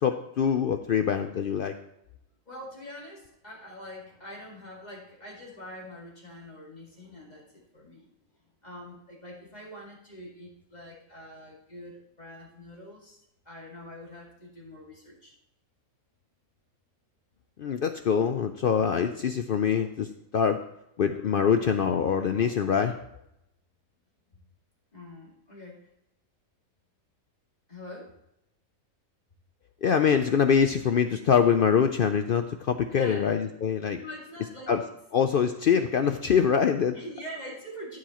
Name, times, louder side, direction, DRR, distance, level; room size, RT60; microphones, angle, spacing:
voice 1, 0.0-1.7 17.6-20.1 20.3-20.6 21.0-23.0 29.8-34.0 34.7-34.8 35.1-36.9, left 7 dB, 70° left, 8 dB, 0.5 m, -24 dB
voice 2, 2.5-8.1 8.6-15.3 24.3-24.4 24.9-25.9 27.7-28.1 32.9-33.2 33.9-35.0 36.9-38.0, equal, 30° left, -3 dB, 2.4 m, -44 dB
14.5 x 7.6 x 3.0 m, 0.81 s
omnidirectional pair, 1.4 m